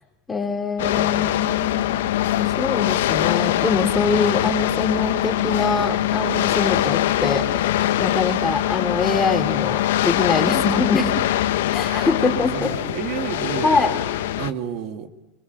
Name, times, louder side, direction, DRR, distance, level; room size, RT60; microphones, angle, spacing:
voice 1, 0.3-2.1 2.4-7.5 8.0-11.1 11.7-12.7 13.6-13.9, left 4 dB, 15° left, 4 dB, 3.9 m, -24 dB
sound 1, 0.8-14.5, left 13 dB, 85° left, 1.2 m, -22 dB
voice 2, 11.8-13.8 14.3-15.1, right 9 dB, 60° right, 6 dB, 2.2 m, -31 dB
26.0 x 22.5 x 9.6 m, 1.1 s
supercardioid pair, 125°, 0 cm